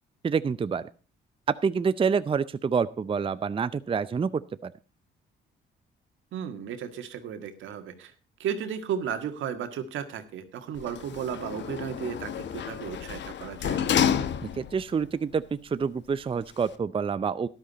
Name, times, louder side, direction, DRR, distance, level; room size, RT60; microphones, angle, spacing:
voice 1, 0.2-0.9 1.5-4.7 14.4-17.5, right 6 dB, 25° right, 14 dB, 0.5 m, -27 dB
voice 2, 6.3-8.1 8.4-13.8, right 8 dB, 80° right, 8 dB, 1.8 m, -34 dB
Sliding door, 10.8-14.9 15.3-15.4, left 8 dB, 65° left, 1.0 m, -30 dB
13.0 x 11.5 x 4.1 m, 0.34 s
cardioid pair, 90°, 20 cm